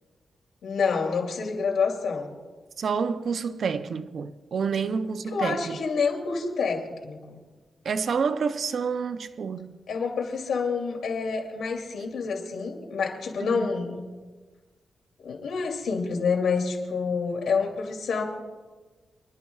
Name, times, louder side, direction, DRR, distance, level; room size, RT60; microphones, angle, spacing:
voice 1, 0.6-2.3 5.3-7.4 9.9-14.0 15.2-18.2, left 5 dB, 90° left, 2.7 m, -28 dB
voice 2, 2.8-5.8 7.8-9.8 13.4-13.7, right 5 dB, 60° right, 0.6 m, -28 dB
28.5 x 11.5 x 2.4 m
wide cardioid pair, 115°, 0 cm